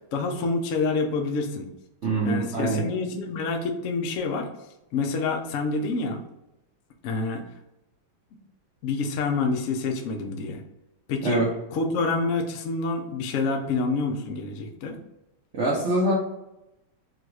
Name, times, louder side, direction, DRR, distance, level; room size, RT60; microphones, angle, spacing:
voice 1, 0.0-1.7 2.2-4.5 4.9-6.2 7.0-7.4 8.8-10.6 11.1-11.4 11.7-15.0, left 3 dB, 75° left, 3 dB, 0.7 m, -27 dB
voice 2, 2.0-2.9 11.2-11.5 15.5-16.1, right 2 dB, 80° right, -4 dB, 0.6 m, -24 dB
3.8 x 2.4 x 4.6 m, 0.90 s
omnidirectional pair, 2.2 m